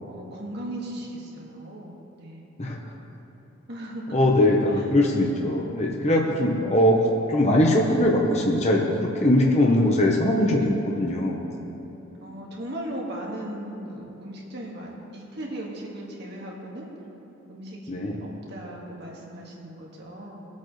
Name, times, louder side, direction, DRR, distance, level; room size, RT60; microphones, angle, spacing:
voice 1, 0.1-2.5 3.7-4.3 4.7-4.9 6.3-6.6 12.2-16.8 17.5-20.5, right 1 dB, 55° right, -3 dB, 2.0 m, -38 dB
voice 2, 4.1-11.4 17.9-18.2, left 1 dB, 35° left, -1 dB, 1.1 m, -21 dB
22.0 x 8.4 x 3.3 m, 3.0 s
head